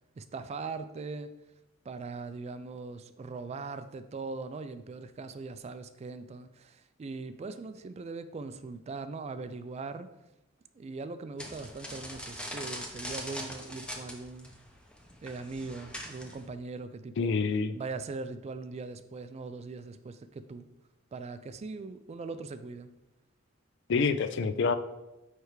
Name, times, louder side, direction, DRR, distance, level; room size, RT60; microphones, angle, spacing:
voice 1, 0.2-1.3 1.9-10.1 10.7-14.5 15.2-17.4 17.7-20.7 21.1-22.9, right 3 dB, 30° right, 11 dB, 0.3 m, -40 dB
sound 1, 11.4-16.5, equal, 5° left, 0.6 m, -42 dB
voice 2, 17.2-17.7 23.9-24.7, left 4 dB, 60° left, 11 dB, 0.4 m, -27 dB
9.4 x 3.3 x 3.1 m, 0.96 s
head